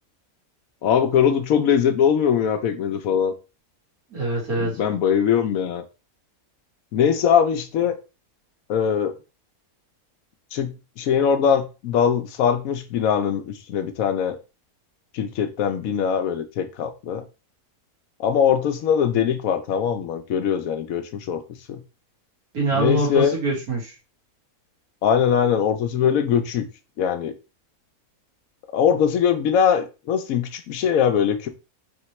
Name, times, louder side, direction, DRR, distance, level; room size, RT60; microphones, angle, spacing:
voice 1, 0.8-3.3 4.6-5.8 6.9-8.0 8.7-9.1 10.5-14.4 15.1-17.2 18.2-21.4 21.7-21.8 22.7-23.3 25.0-26.6 27.0-27.3 28.7-31.5, left 8 dB, 75° left, 8 dB, 1.0 m, -21 dB
voice 2, 4.1-4.8 22.5-23.9, right 2 dB, 90° right, -3 dB, 2.3 m, -24 dB
4.3 x 3.3 x 3.0 m, 0.30 s
omnidirectional pair, 1.5 m